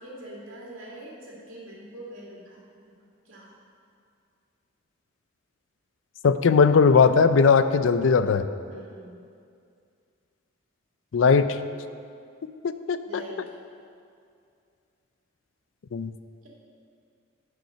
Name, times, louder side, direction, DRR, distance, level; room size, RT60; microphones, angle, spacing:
voice 1, 0.0-2.8 3.3-3.5 8.6-9.1 13.0-13.4, right 1 dB, 85° right, -4 dB, 2.3 m, -43 dB
voice 2, 6.2-8.5 11.1-11.6 12.6-13.0 15.9-16.1, left 5 dB, 75° left, 11 dB, 0.4 m, -19 dB
10.5 x 5.4 x 5.7 m, 2.4 s
head